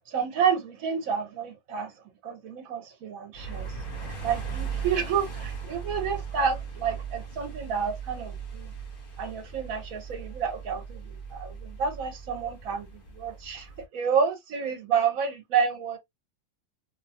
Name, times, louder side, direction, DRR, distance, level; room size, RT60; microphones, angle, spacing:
voice 1, 0.1-1.9 2.2-3.7 4.2-8.7 9.2-12.9 13.2-13.7 13.9-16.0, right 6 dB, 85° right, 1.2 m, -29 dB
sound 1, 3.3-13.8, right 6 dB, 45° left, 1.2 m, -38 dB
2.8 x 2.3 x 2.6 m
omnidirectional pair, 1.4 m